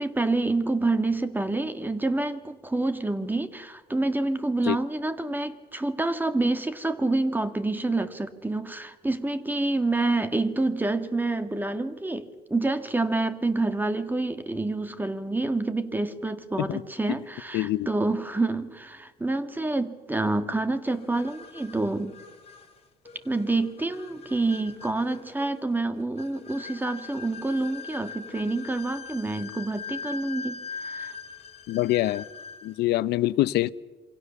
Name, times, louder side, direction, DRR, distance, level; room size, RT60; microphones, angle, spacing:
voice 1, 0.0-22.2 23.2-31.1, right 2 dB, 10° right, 1.9 m, -27 dB
voice 2, 17.5-17.9 31.7-32.2 32.6-33.7, left 16 dB, 80° left, 0.8 m, -24 dB
sound 1, 20.8-32.8, left 5 dB, 35° left, 4.0 m, -42 dB
27.5 x 24.5 x 7.1 m
cardioid pair, 110°, 17 cm